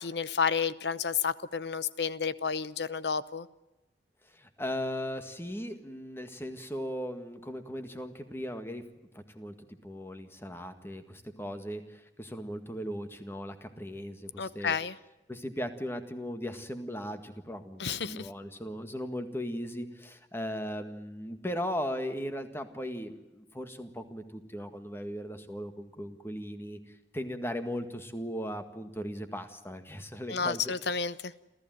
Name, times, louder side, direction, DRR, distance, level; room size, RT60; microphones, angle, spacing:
voice 1, 0.0-3.5 14.4-15.0 17.8-18.3 30.3-31.3, left 6 dB, 65° left, 16 dB, 0.9 m, -31 dB
voice 2, 4.3-8.8 9.1-9.5 9.8-14.8 15.3-30.7, equal, 15° left, 8 dB, 1.8 m, -38 dB
28.0 x 14.5 x 9.3 m, 1.0 s
head